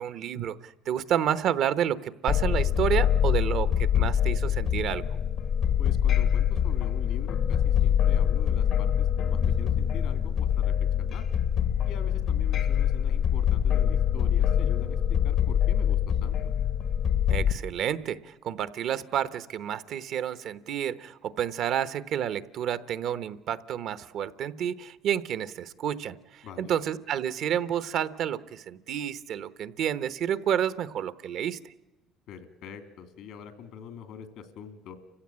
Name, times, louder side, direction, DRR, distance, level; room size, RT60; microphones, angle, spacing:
voice 1, 0.0-5.0 17.3-31.6, right 9 dB, 65° right, 13 dB, 1.0 m, -30 dB
sound 1, 2.3-17.5, left 9 dB, 60° left, 1.2 m, -24 dB
voice 2, 5.8-11.3 11.8-16.4 26.4-26.7 32.3-35.0, left 7 dB, 75° left, 9 dB, 2.8 m, -44 dB
29.5 x 16.0 x 8.8 m, 1.1 s
cardioid pair, 100°, 0 cm